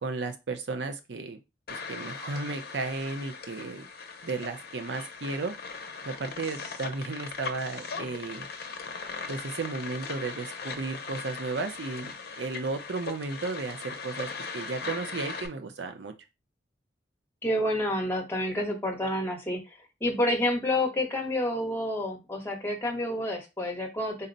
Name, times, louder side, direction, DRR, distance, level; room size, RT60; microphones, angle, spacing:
voice 1, 0.0-1.4 1.7-3.9 4.2-5.5 6.1-8.5 9.3-16.1, right 3 dB, 75° right, 7 dB, 0.6 m, -34 dB
sound 1, 1.7-15.5, left 4 dB, 60° left, 0.6 m, -39 dB
voice 2, 17.4-19.6 20.0-24.3, left 1 dB, 15° left, 0 dB, 0.9 m, -29 dB
3.9 x 2.1 x 3.9 m, 0.25 s
head